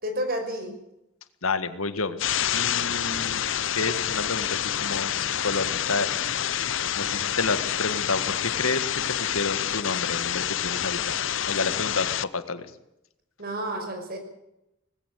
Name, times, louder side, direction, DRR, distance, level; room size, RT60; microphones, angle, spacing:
voice 1, 0.0-0.7 13.4-14.2, right 1 dB, 45° right, 5 dB, 5.7 m, -30 dB
voice 2, 1.4-2.2 2.5-3.5 3.7-6.4 6.9-11.2 11.5-12.7, left 4 dB, 85° left, 11 dB, 1.8 m, -30 dB
sound 1, 2.2-12.2, left 10 dB, 60° left, 0.7 m, -28 dB
20.0 x 16.0 x 8.2 m, 0.87 s
head